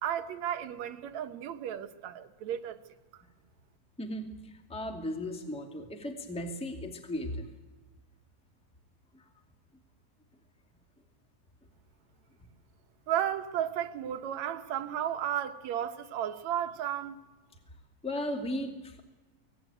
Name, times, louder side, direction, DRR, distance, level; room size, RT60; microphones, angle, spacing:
voice 1, 0.0-2.8 13.1-17.2, right 10 dB, 70° right, 2.3 m, -33 dB
voice 2, 4.0-7.5 18.0-19.0, left 1 dB, ahead, 1.9 m, -36 dB
25.0 x 18.5 x 9.0 m
omnidirectional pair, 3.5 m